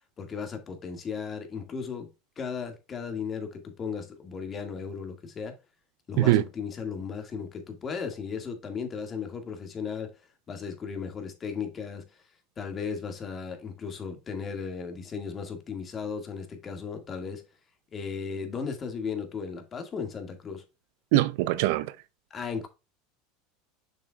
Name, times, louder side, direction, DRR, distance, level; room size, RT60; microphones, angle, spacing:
voice 1, 0.2-2.1 2.4-5.6 6.1-10.1 10.5-12.2 12.6-17.5 17.9-20.6 22.3-22.7, left 6 dB, 30° left, 2.0 m, -36 dB
voice 2, 21.1-21.9, right 15 dB, 70° right, 0.5 m, -22 dB
6.8 x 5.8 x 2.4 m
supercardioid pair, 105°, 0 cm